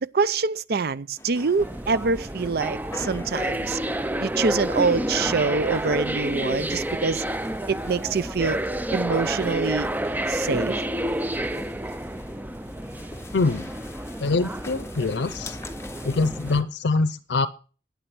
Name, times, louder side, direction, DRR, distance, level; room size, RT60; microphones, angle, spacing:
voice 1, 0.0-3.8 4.2-7.2 7.7-8.6 8.9-9.9 10.3-10.8, right 4 dB, 60° right, 0.5 m, -25 dB
sound 1, 1.2-16.6, left 2 dB, 15° left, 1.0 m, -45 dB
sound 2, 1.6-16.6, right 1 dB, 10° right, 0.5 m, -30 dB
voice 2, 13.3-13.7 14.2-15.6 16.0-17.5, left 3 dB, 75° left, 0.6 m, -24 dB
11.0 x 8.6 x 6.0 m
head